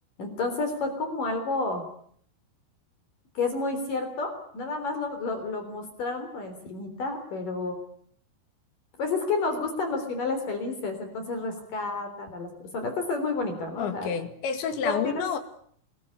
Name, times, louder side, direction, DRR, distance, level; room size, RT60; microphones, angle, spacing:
voice 1, 0.2-1.8 3.4-7.8 9.0-14.1 15.0-15.2, left 3 dB, 45° left, 6 dB, 5.0 m, -30 dB
voice 2, 13.8-15.4, left 7 dB, 70° left, 8 dB, 4.4 m, -29 dB
29.5 x 20.5 x 8.5 m, 0.64 s
omnidirectional pair, 5.6 m